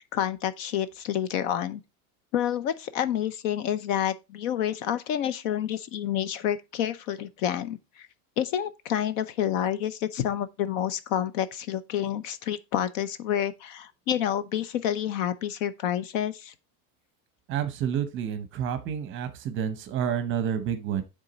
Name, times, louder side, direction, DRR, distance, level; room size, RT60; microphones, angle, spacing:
voice 1, 0.1-1.8 2.3-8.1 8.4-16.5, left 10 dB, 60° left, 0.8 m, -29 dB
voice 2, 17.5-21.0, right 8 dB, 30° right, 0.8 m, -29 dB
9.7 x 3.7 x 4.0 m
supercardioid pair, 170°, 43 cm